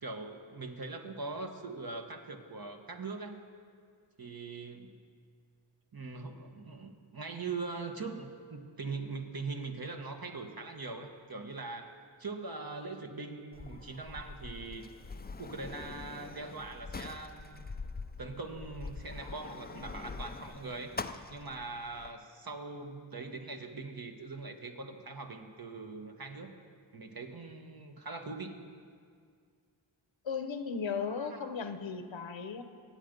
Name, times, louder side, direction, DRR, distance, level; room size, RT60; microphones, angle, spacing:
voice 1, 0.0-3.4 4.2-5.0 5.9-14.9 15.4-17.7 18.2-21.0 21.3-26.5 26.9-28.6 31.2-31.5, right 3 dB, 45° right, 4 dB, 1.3 m, -42 dB
Sliding door, 13.5-22.1, left 4 dB, 20° left, 0.4 m, -44 dB
voice 2, 30.2-32.6, left 5 dB, 70° left, 8 dB, 1.0 m, -36 dB
22.0 x 9.0 x 5.3 m, 2.1 s
wide cardioid pair, 85°, 48 cm